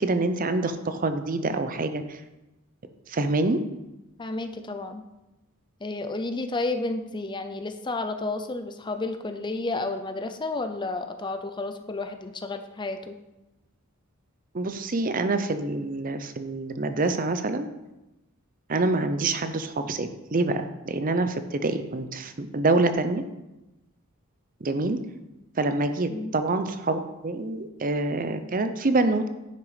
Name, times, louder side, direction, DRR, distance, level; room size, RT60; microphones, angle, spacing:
voice 1, 0.0-2.2 3.1-3.6 14.5-17.7 18.7-23.2 24.6-25.0 25.6-29.3, right 2 dB, 40° right, 9 dB, 0.6 m, -26 dB
voice 2, 4.2-5.0 5.8-13.2 26.1-26.3, left 2 dB, 20° left, 8 dB, 0.5 m, -31 dB
10.5 x 6.0 x 5.0 m, 0.98 s
head